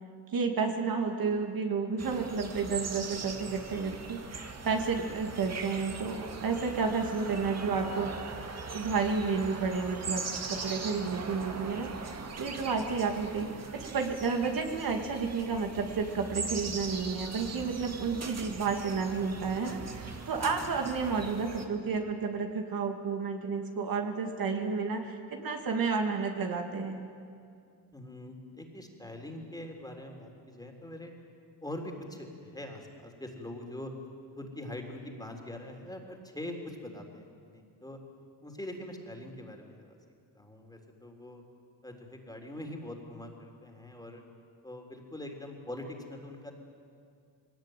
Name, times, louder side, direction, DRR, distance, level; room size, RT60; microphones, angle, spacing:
voice 1, 0.3-8.1 8.7-12.1 12.4-27.1, right 5 dB, 55° right, 3 dB, 2.4 m, -31 dB
sound 1, 2.0-21.7, right 4 dB, 40° right, 2.3 m, -41 dB
voice 2, 27.9-31.1 31.6-33.9 34.4-38.0 38.4-40.0 40.4-41.4 41.8-44.2 44.6-46.5, left 1 dB, 10° left, 2 dB, 3.6 m, -43 dB
21.0 x 18.5 x 9.3 m, 2.3 s
cardioid pair, 95°, 42 cm